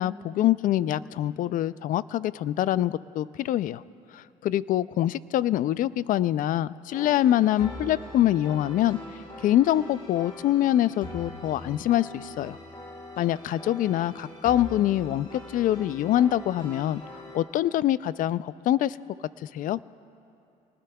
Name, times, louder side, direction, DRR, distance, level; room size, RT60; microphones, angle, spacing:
voice 1, 0.0-3.8 4.1-9.0 9.4-12.6 13.2-17.0 17.3-19.0 19.4-19.8, left 12 dB, 60° left, 18 dB, 0.4 m, -25 dB
sound 1, 6.9-17.4, left 1 dB, 30° left, 3.8 m, -42 dB
25.0 x 19.5 x 2.3 m, 2.6 s
cardioid pair, 95°, 15 cm